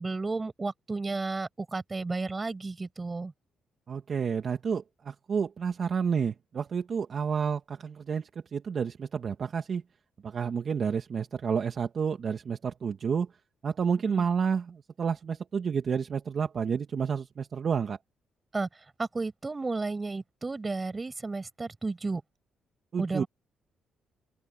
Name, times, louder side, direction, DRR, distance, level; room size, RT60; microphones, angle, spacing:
voice 1, 0.0-3.3 14.0-14.3 18.5-18.7 19.0-22.2 23.0-23.3, right 3 dB, 25° right, 6.7 m, -33 dB
voice 2, 3.9-9.8 10.2-13.3 13.6-18.0 22.9-23.2, right 6 dB, 50° right, 1.9 m, -30 dB
open air
cardioid pair, 90°, 0 cm